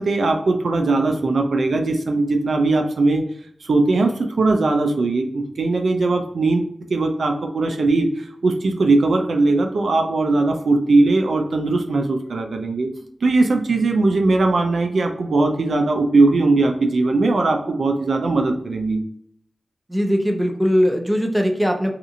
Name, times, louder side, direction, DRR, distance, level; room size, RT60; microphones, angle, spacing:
voice 1, 0.0-3.2 3.6-12.9 13.2-19.0, right 3 dB, 85° right, 4 dB, 0.4 m, -19 dB
voice 2, 19.9-21.9, equal, 15° right, 3 dB, 0.6 m, -20 dB
2.7 x 2.5 x 2.5 m, 0.68 s
cardioid pair, 50°, 0 cm